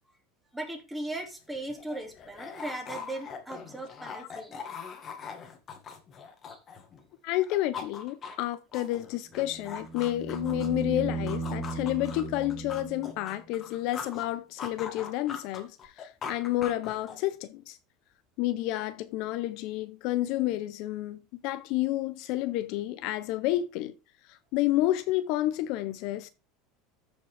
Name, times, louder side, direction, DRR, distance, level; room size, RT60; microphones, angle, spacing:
voice 1, 0.5-4.6 6.5-6.6, right 2 dB, 5° right, 2.4 m, -38 dB
sound 1, 1.2-7.0 7.3-10.8 11.3-14.3 14.6-17.3, left 6 dB, 30° left, 1.6 m, -42 dB
voice 2, 7.2-17.8 18.4-23.9 24.3-26.3, left 15 dB, 55° left, 0.6 m, -30 dB
sound 2, 9.3-13.4 15.8-15.9, right 2 dB, 40° right, 3.6 m, -36 dB
14.0 x 5.2 x 3.4 m
supercardioid pair, 145°, 0 cm